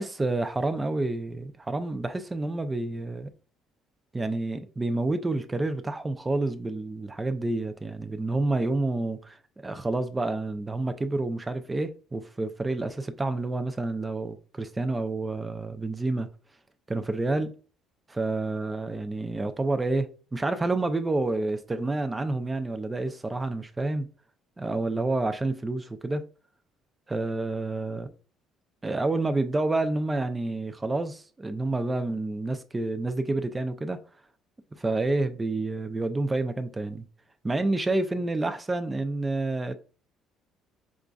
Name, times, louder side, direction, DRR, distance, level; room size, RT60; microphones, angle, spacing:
voice 1, 0.0-3.3 4.1-16.3 16.9-17.5 18.1-24.1 24.6-26.3 27.1-28.1 28.8-34.0 34.7-37.1 37.4-39.7, right 2 dB, 15° right, 0.4 m, -29 dB
5.1 x 2.5 x 2.3 m
cardioid pair, 140°, 0 cm